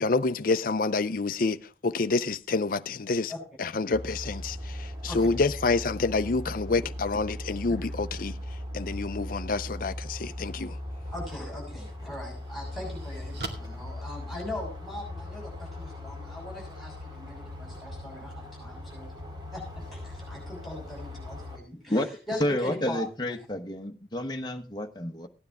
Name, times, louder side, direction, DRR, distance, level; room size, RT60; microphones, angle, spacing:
voice 1, 0.0-3.3 3.6-8.4 8.7-10.8, left 3 dB, 50° left, 0.6 m, -28 dB
sound 1, 3.9-21.6, left 1 dB, 25° right, 2.2 m, -39 dB
voice 2, 11.1-19.1 19.5-19.6 19.9-23.1, left 1 dB, ahead, 6.5 m, -40 dB
sound 2, 11.2-11.3 11.9-14.9, right 2 dB, 70° right, 2.1 m, -43 dB
voice 3, 22.4-25.3, left 1 dB, 25° left, 1.0 m, -30 dB
16.5 x 9.8 x 3.5 m
head